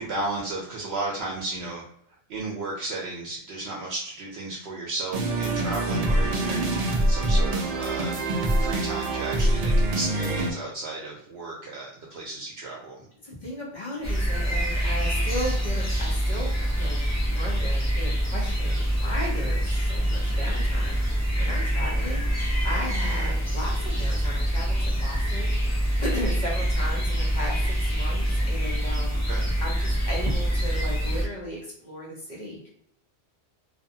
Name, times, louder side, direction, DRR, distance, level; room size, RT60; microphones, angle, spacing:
voice 1, 0.0-1.8 2.3-8.1 8.6-13.0 29.3-29.5, right 2 dB, 70° right, -2 dB, 0.8 m, -34 dB
sound 1, 5.1-10.5, right 1 dB, 55° right, 0.4 m, -24 dB
voice 2, 13.2-29.3 29.6-32.7, equal, 45° left, -4 dB, 0.9 m, -36 dB
sound 2, 14.0-31.3, equal, 25° left, 0.4 m, -25 dB
2.6 x 2.2 x 2.7 m, 0.68 s
omnidirectional pair, 1.1 m